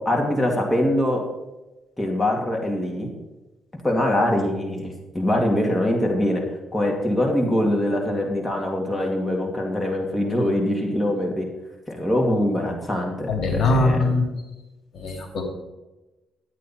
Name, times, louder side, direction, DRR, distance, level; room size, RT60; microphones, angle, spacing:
voice 1, 0.1-1.2 2.0-3.1 3.8-6.4 6.7-11.5 11.9-13.3 13.7-14.0, left 1 dB, 15° left, 0 dB, 2.4 m, -23 dB
voice 2, 13.3-14.3 14.9-15.4, left 2 dB, 60° left, 3 dB, 2.7 m, -21 dB
11.5 x 9.3 x 4.3 m, 1.1 s
cardioid pair, 90°, 0 cm